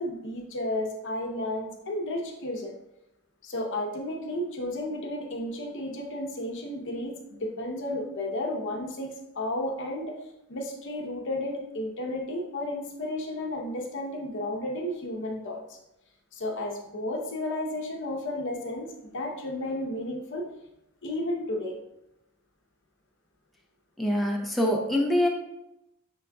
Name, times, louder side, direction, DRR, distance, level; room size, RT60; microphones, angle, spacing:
voice 1, 0.0-2.7 3.4-10.2 10.5-15.8 16.3-20.5 21.0-21.8, left 1 dB, 60° left, 1 dB, 0.7 m, -33 dB
voice 2, 24.0-25.3, left 1 dB, ahead, -2 dB, 0.7 m, -24 dB
6.1 x 3.6 x 2.3 m, 0.85 s
head